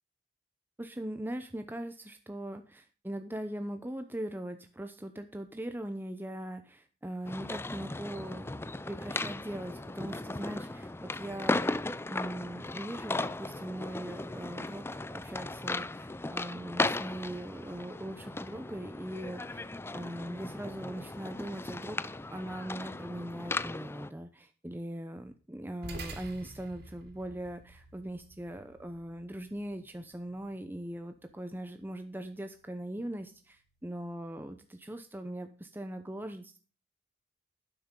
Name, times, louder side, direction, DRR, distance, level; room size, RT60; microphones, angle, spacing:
voice 1, 0.8-19.7 19.9-36.6, right 1 dB, 10° right, 7 dB, 0.8 m, -40 dB
sound 1, 7.2-24.1, left 2 dB, 15° left, 0.4 m, -37 dB
sound 2, 25.8-34.5, right 2 dB, 60° right, 3.4 m, -51 dB
12.0 x 10.0 x 3.8 m, 0.37 s
head